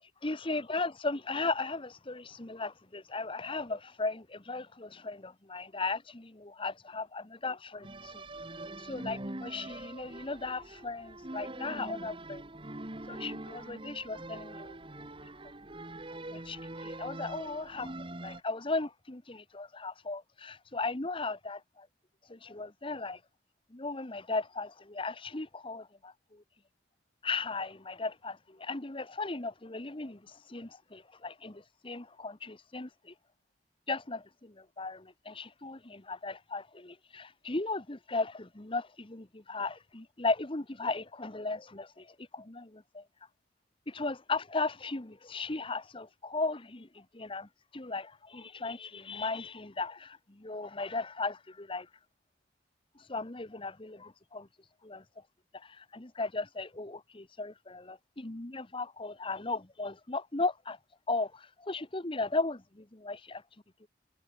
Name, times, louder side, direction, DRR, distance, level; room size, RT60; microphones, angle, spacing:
voice 1, 0.2-8.2 8.8-12.5 13.1-15.1 16.3-17.9 18.2-21.9 22.3-23.2 23.7-26.4 27.2-33.1 33.9-43.0 43.9-51.9 53.1-54.5 54.8-55.0 55.5-60.8 61.1-63.4 63.8-63.9, left 3 dB, 25° left, 1.2 m, -37 dB
sound 1, 7.8-18.4, right 1 dB, 25° right, 1.8 m, -43 dB
head